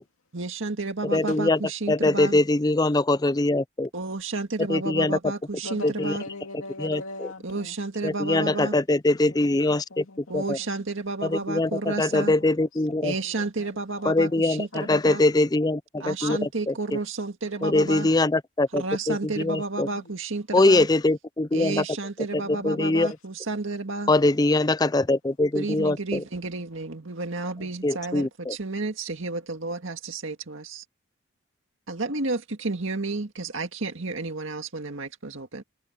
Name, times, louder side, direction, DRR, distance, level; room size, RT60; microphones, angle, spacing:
voice 1, 0.3-2.4 3.9-6.2 7.4-8.8 10.3-12.3 13.0-15.2 16.0-18.1 18.7-20.9 21.5-24.1 25.5-30.8 31.9-35.6, right 3 dB, 70° right, 2.0 m, -31 dB
voice 2, 1.1-1.6 1.9-3.9 4.7-5.2 6.1-6.2 6.8-7.0 8.0-10.0 10.3-10.6 11.2-13.1 14.1-16.4 17.6-18.8 19.1-19.9 20.5-21.8 22.6-23.1 24.1-26.2 27.8-28.5, left 2 dB, 20° left, 0.4 m, -22 dB
voice 3, 5.6-7.8 8.1-8.5 8.9-10.7 11.3-12.8 13.1-13.7 13.9-14.9 16.2-16.4 17.4-17.7 19.8-20.1 22.3-23.1, left 2 dB, 85° left, 2.3 m, -42 dB
head